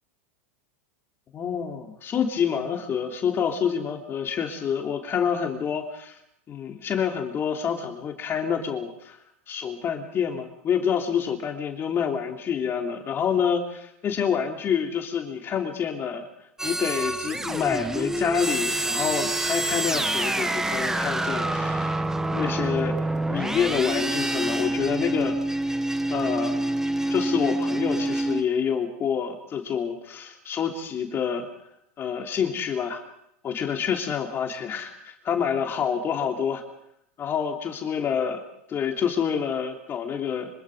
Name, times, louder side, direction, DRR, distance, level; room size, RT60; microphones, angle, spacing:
voice 1, 1.3-6.2 6.5-9.2 9.5-16.3 16.6-23.0 23.3-25.4 26.1-26.6 27.1-31.5 32.0-33.0 33.4-36.6 37.2-38.4 38.7-40.5, left 7 dB, 30° left, 4 dB, 3.4 m, -27 dB
sound 1, 16.6-28.4, right 1 dB, 5° right, 2.0 m, -27 dB
25.5 x 25.0 x 5.1 m, 0.76 s
hypercardioid pair, 115°, 7 cm